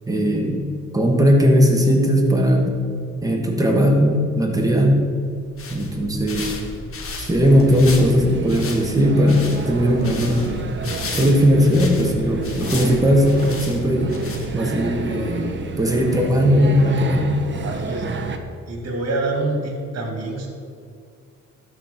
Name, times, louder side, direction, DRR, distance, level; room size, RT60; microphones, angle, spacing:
voice 1, 0.1-0.6 0.9-2.7 3.2-5.1 5.7-6.5 7.2-10.5 11.1-14.2 14.5-17.3, equal, 10° right, 1 dB, 1.7 m, -18 dB
sound 1, 5.3-14.8, left 2 dB, 45° left, 1.4 m, -34 dB
voice 2, 6.3-6.7 17.6-18.2 18.7-20.5, right 2 dB, 55° right, 2 dB, 2.2 m, -27 dB
sound 2, 7.4-18.4, right 4 dB, 40° right, 0.9 m, -30 dB
12.5 x 4.7 x 5.3 m, 2.2 s
cardioid pair, 90°, 30 cm